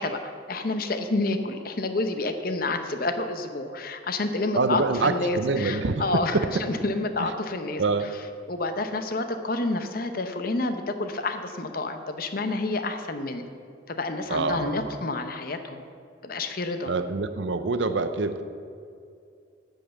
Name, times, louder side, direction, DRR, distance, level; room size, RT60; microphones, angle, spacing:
voice 1, 0.0-7.8 8.5-13.5 13.9-15.8 16.2-16.9, left 2 dB, 45° left, 8 dB, 0.7 m, -29 dB
voice 2, 4.5-6.6 7.2-7.3 7.8-8.1 14.3-14.9 16.9-18.4, right 3 dB, 65° right, 10 dB, 0.6 m, -26 dB
9.9 x 5.5 x 7.8 m, 2.4 s
head